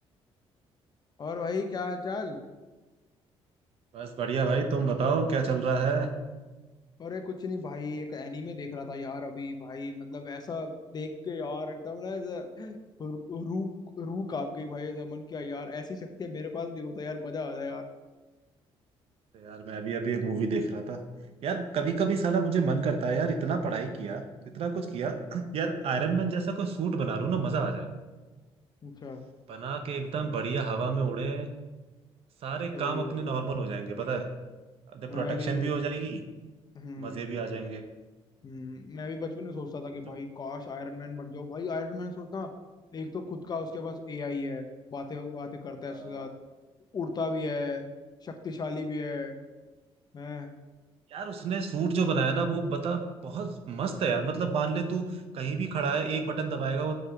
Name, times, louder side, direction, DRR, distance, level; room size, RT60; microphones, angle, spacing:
voice 1, 1.2-2.4 7.0-13.7 14.0-17.9 28.8-29.2 32.7-33.5 35.1-35.7 36.7-37.3 38.4-42.5 42.9-46.3 46.9-47.8 48.2-49.4 50.1-50.5, left 3 dB, 40° left, 6 dB, 0.9 m, -36 dB
voice 2, 3.9-6.1 19.3-21.0 21.4-24.2 24.5-27.9 29.5-31.5 32.4-34.3 34.9-36.2 37.0-37.8 45.9-46.2 51.1-57.0, right 5 dB, 65° right, 7 dB, 0.9 m, -29 dB
6.5 x 4.9 x 5.7 m, 1.2 s
cardioid pair, 100°, 11 cm